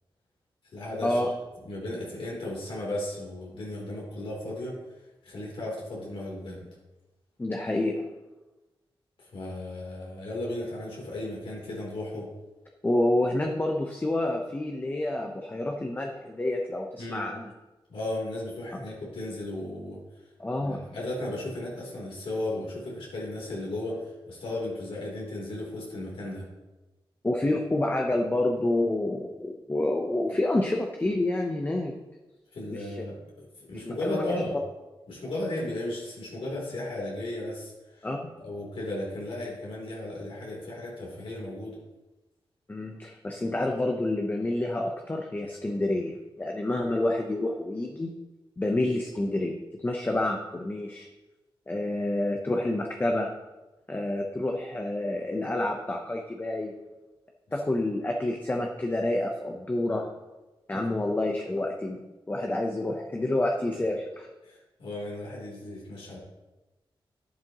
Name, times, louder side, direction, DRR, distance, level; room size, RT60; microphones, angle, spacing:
voice 1, 0.7-1.3 1.6-4.8 5.2-6.7 9.2-12.3 17.0-17.3 17.9-20.0 20.6-26.5 32.5-33.2 33.6-34.6 35.1-38.1 38.4-41.8 63.2-63.3 64.4-66.2, left 1 dB, 75° left, -4 dB, 3.4 m, -35 dB
voice 2, 7.4-8.0 12.8-17.5 20.4-20.9 27.2-31.9 32.7-33.0 33.9-34.2 38.0-38.3 42.7-48.2 48.6-51.1 51.7-53.3 53.9-56.7 57.5-60.1 60.7-62.0 62.3-64.3, left 1 dB, 20° left, 2 dB, 0.8 m, -28 dB
11.0 x 11.0 x 3.0 m, 1.1 s
wide cardioid pair, 145°, 9 cm